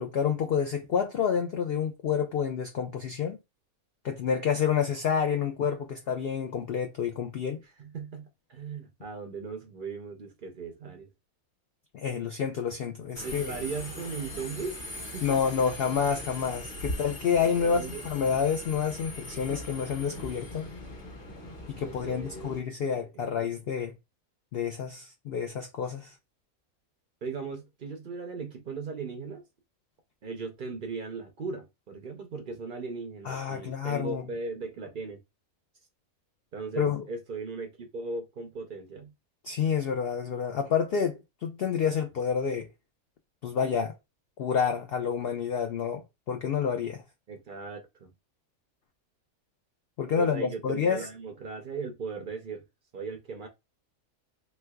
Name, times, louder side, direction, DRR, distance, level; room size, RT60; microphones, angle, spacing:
voice 1, 0.0-3.4 4.0-7.6 11.9-13.5 15.2-20.7 21.7-23.9 24.5-26.1 33.3-34.2 36.8-37.0 39.4-42.7 43.4-43.9 44.4-46.0 46.3-47.0 50.0-51.1, left 7 dB, 70° left, 0.5 m, -29 dB
voice 2, 7.6-11.1 13.2-15.4 16.9-17.0 17.4-18.1 21.8-22.5 22.8-23.4 27.2-29.4 30.2-35.2 36.5-39.1 47.3-48.1 50.2-52.6 52.9-53.5, right 4 dB, 60° right, 0.5 m, -38 dB
Subway metro underground, 13.1-22.6, left 1 dB, 40° left, 1.3 m, -40 dB
3.3 x 3.2 x 2.2 m
omnidirectional pair, 1.5 m